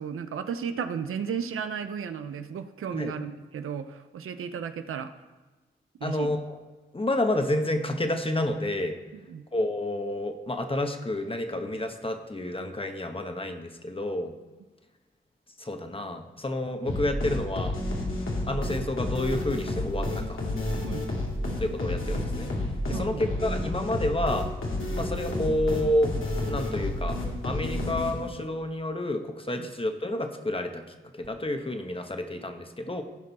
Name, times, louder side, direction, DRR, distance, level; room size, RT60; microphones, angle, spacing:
voice 1, 0.0-5.1 6.0-6.3 9.1-9.4 20.8-21.1 22.9-23.2 24.8-24.9 29.6-29.7, right 7 dB, 85° right, 9 dB, 0.6 m, -34 dB
voice 2, 6.0-6.6 6.9-9.0 9.5-14.3 15.6-17.8 18.5-20.4 21.6-22.5 22.9-24.5 25.0-26.1 26.4-27.2 27.4-30.8 31.1-33.0, left 1 dB, 25° left, 5 dB, 1.2 m, -29 dB
sound 1, 16.9-28.5, left 1 dB, 75° left, 2.1 m, -30 dB
16.0 x 5.3 x 4.1 m, 1.2 s
cardioid pair, 45°, 21 cm